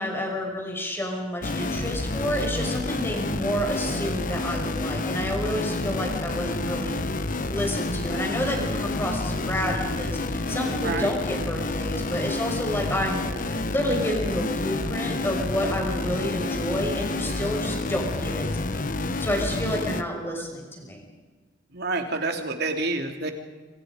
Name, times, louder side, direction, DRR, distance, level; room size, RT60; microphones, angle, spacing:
voice 1, 0.0-7.0 7.5-21.0, equal, 10° left, 1 dB, 5.7 m, -29 dB
sound 1, 1.4-20.0, left 2 dB, 45° left, 1.1 m, -29 dB
voice 2, 10.7-11.1 20.3-20.4 21.7-23.3, right 3 dB, 60° right, 4 dB, 3.0 m, -28 dB
27.0 x 26.5 x 5.2 m, 1.4 s
head